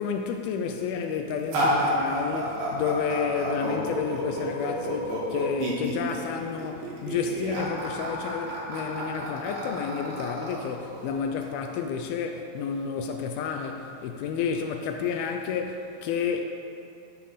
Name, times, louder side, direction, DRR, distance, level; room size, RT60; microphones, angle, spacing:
voice 1, 0.0-16.4, left 6 dB, 85° left, 2.1 m, -30 dB
sound 1, 1.5-11.4, equal, 85° right, 4.6 m, -30 dB
13.5 x 9.4 x 5.0 m
omnidirectional pair, 5.0 m